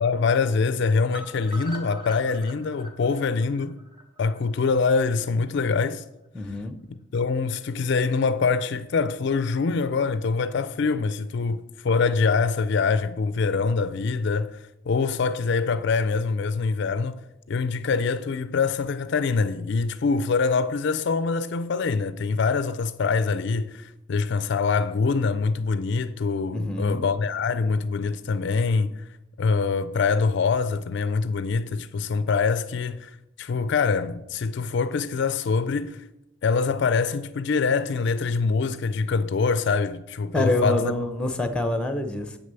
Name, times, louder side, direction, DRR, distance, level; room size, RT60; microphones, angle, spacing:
voice 1, 0.0-3.8 4.2-6.0 7.1-17.2 17.5-29.0 29.4-33.1 33.4-36.0 36.4-40.9, left 4 dB, 55° left, 0.4 m, -24 dB
sound 1, 1.1-5.1 5.5-5.6 5.9-6.0 6.2-6.3, equal, 20° right, 1.1 m, -42 dB
voice 2, 6.3-6.8 26.5-27.1 40.3-42.4, left 2 dB, 5° left, 0.7 m, -26 dB
8.0 x 6.5 x 6.8 m
head